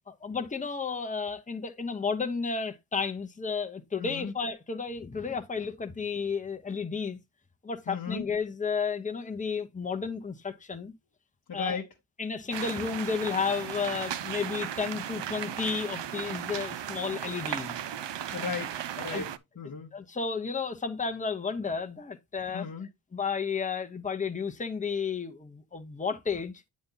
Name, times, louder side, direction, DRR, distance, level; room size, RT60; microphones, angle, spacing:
voice 1, 0.2-7.2 7.6-10.9 11.5-11.8 12.2-17.7 18.3-18.5 19.0-19.2 19.9-22.7 23.1-26.5, left 5 dB, 15° left, 0.8 m, -32 dB
voice 2, 4.0-4.3 7.9-8.3 11.5-11.9 18.3-19.9 22.5-22.9, left 5 dB, 40° left, 1.0 m, -36 dB
sound 1, 12.5-19.4, right 10 dB, 60° right, 0.6 m, -36 dB
9.4 x 4.1 x 3.8 m
wide cardioid pair, 165°, 48 cm